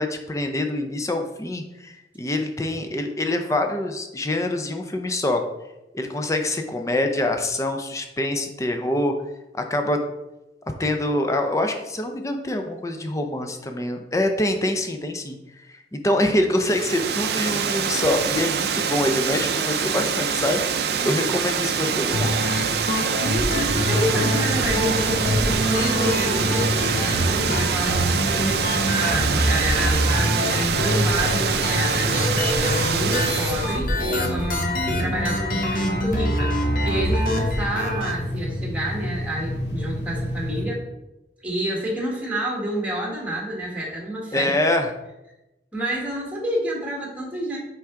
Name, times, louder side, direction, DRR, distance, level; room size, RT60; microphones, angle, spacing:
voice 1, 0.0-5.4 5.9-9.1 9.7-10.0 10.8-20.6 21.0-22.3 44.3-44.9, left 1 dB, 20° left, 5 dB, 0.5 m, -25 dB
Water, 16.6-33.8, right 6 dB, 60° right, 0.5 m, -25 dB
sound 1, 22.1-38.1, left 1 dB, 50° left, 0.9 m, -25 dB
voice 2, 23.2-40.8 41.4-44.5 45.7-47.6, equal, 10° right, -2 dB, 1.4 m, -28 dB
sound 2, 23.8-40.6, equal, 85° left, 1.9 m, -30 dB
5.9 x 4.7 x 3.7 m, 0.96 s
head